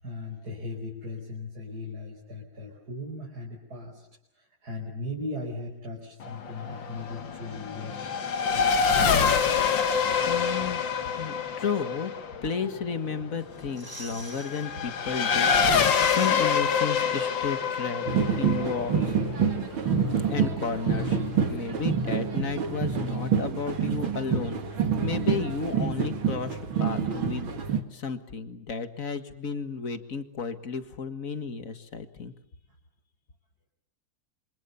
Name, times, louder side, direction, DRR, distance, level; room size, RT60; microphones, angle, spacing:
voice 1, 0.0-4.1 4.4-9.5, left 2 dB, 45° right, -2 dB, 5.6 m, -38 dB
Race car auto racing / Accelerating revving vroom, 6.2-20.3, left 6 dB, 60° left, 2.2 m, -26 dB
voice 2, 10.3-10.8 11.2-12.1 12.4-18.1 18.4-19.1 20.3-21.2 21.5-24.6 25.0-27.6 27.9-32.3, left 5 dB, 40° left, 9 dB, 2.0 m, -33 dB
sound 1, 13.4-14.7 15.1-15.2 15.5-17.2 17.5-17.6, right 1 dB, 10° right, 2.2 m, -45 dB
sound 2, 18.1-27.8, right 6 dB, 65° right, 2.8 m, -27 dB
28.0 x 26.0 x 7.1 m, 0.73 s
omnidirectional pair, 2.4 m